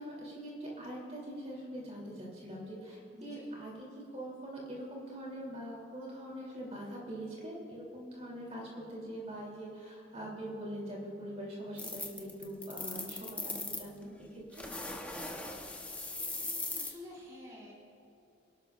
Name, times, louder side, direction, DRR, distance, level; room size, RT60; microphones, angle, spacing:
voice 1, 0.0-14.6, equal, 35° right, -3 dB, 3.1 m, -43 dB
voice 2, 3.1-3.4 16.7-17.7, left 1 dB, 20° right, -5 dB, 3.0 m, -49 dB
sound 1, 11.8-13.9 14.5-16.9, left 2 dB, 10° left, 1.0 m, -39 dB
27.5 x 12.0 x 2.5 m, 2.9 s
head